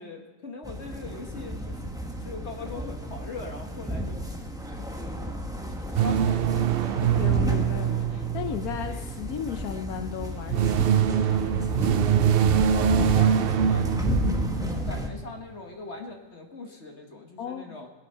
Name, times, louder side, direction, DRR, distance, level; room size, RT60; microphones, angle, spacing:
voice 1, 0.0-1.9 2.2-4.3 4.8-5.2 5.7-7.0 12.7-14.2 14.6-17.9, left 2 dB, 45° left, 3 dB, 1.6 m, -41 dB
sound 1, 0.6-15.1, equal, 5° right, 0.8 m, -32 dB
sound 2, 6.0-9.3 10.2-15.0, right 9 dB, 85° right, 0.5 m, -24 dB
voice 2, 7.0-11.8 17.4-17.8, left 9 dB, 75° left, 7 dB, 1.1 m, -35 dB
19.5 x 8.4 x 5.5 m, 1.2 s
omnidirectional pair, 1.6 m